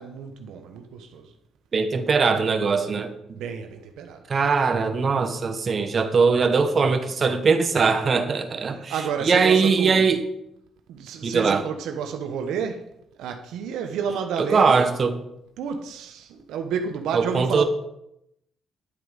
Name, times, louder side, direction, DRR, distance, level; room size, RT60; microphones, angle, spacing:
voice 1, 0.0-1.3 3.3-4.3 8.7-10.1 10.9-12.9 13.2-14.9 15.6-17.6, right 6 dB, 85° right, 1.1 m, -31 dB
voice 2, 1.7-3.1 4.3-8.9 9.2-10.2 11.2-11.6 14.4-15.1 17.1-17.6, right 5 dB, 45° right, 1.2 m, -21 dB
10.5 x 8.0 x 5.2 m
cardioid pair, 90°, 0 cm